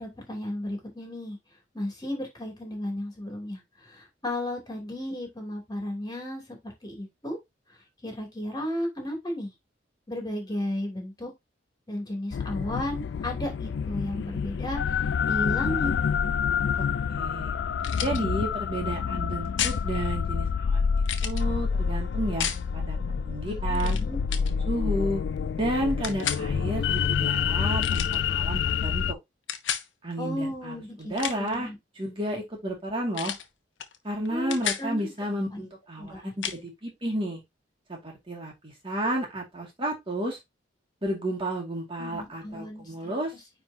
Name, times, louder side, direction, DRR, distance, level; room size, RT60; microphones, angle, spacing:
voice 1, 0.0-1.4 1.7-7.4 8.0-9.5 10.1-11.3 11.9-15.9 23.5-24.2 30.2-31.1 31.4-31.7 34.3-35.1 35.5-35.6 36.0-36.3 42.0-43.2, left 1 dB, 20° left, 2.9 m, -34 dB
sound 1, 12.3-29.1, left 6 dB, 65° left, 0.3 m, -28 dB
voice 2, 16.8-17.5 18.0-20.9 21.2-23.0 23.2-24.0 24.7-25.2 25.6-29.2 30.0-31.7 32.0-33.4 34.0-37.4 37.9-40.4 41.0-43.3, right 1 dB, 30° right, 2.2 m, -32 dB
sound 2, 17.8-18.2 19.6-19.8 21.0-21.4 22.4-22.6 23.7-24.0 24.3-24.5 26.0-26.4 27.8-28.2 29.5-29.9 31.0-31.5 33.1-33.5 33.8-34.0 34.2-34.9 36.4-36.6, left 9 dB, 85° left, 1.0 m, -31 dB
9.5 x 3.7 x 2.8 m
head